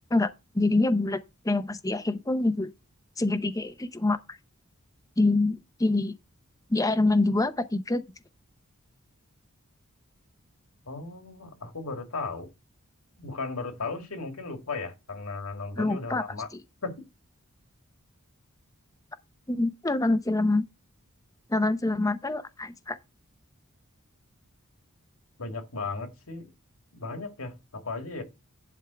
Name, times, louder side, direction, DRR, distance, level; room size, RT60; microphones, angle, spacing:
voice 1, 0.1-1.2 1.4-2.7 3.2-4.2 5.2-6.1 6.7-8.0 15.8-16.2 16.5-16.6 19.5-20.6 21.5-23.0, left 2 dB, 15° left, 0.6 m, -25 dB
voice 2, 10.9-12.5 13.2-16.5 16.8-17.0 25.4-26.5 26.9-28.2, left 3 dB, 75° left, 2.1 m, -36 dB
11.0 x 3.6 x 6.8 m
head